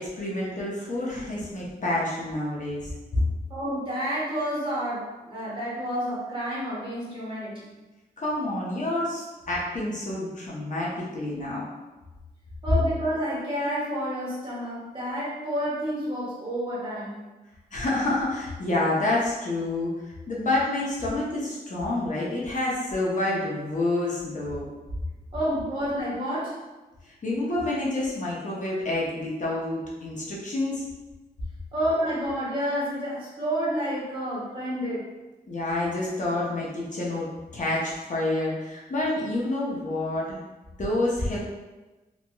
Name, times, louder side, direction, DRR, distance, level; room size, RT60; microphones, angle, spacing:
voice 1, 0.0-3.2 8.2-11.7 17.7-24.7 27.0-30.8 35.5-40.5 40.8-41.4, left 2 dB, 50° left, -5 dB, 0.8 m, -28 dB
voice 2, 3.5-7.7 12.6-17.2 25.3-26.6 31.7-35.1, equal, 30° right, -8 dB, 1.2 m, -29 dB
2.9 x 2.8 x 2.2 m, 1.1 s
wide cardioid pair, 90°, 17 cm